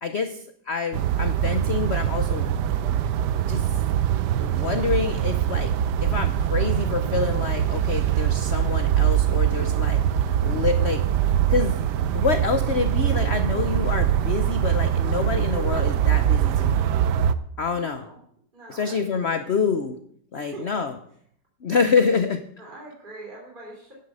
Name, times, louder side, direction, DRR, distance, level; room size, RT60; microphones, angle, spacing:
voice 1, 0.0-2.5 3.5-3.7 4.4-5.7 6.0-11.0 11.5-11.8 12.1-16.8 17.6-18.0 18.7-20.0 20.3-20.9 21.6-22.4, left 5 dB, 60° left, 9 dB, 0.7 m, -27 dB
sound 1, 0.9-17.4, right 10 dB, 70° right, 1.2 m, -23 dB
voice 2, 17.7-18.2 18.5-19.5 20.3-20.6 22.6-23.9, right 2 dB, 25° right, -3 dB, 3.3 m, -43 dB
11.0 x 9.7 x 5.5 m, 0.65 s
omnidirectional pair, 2.0 m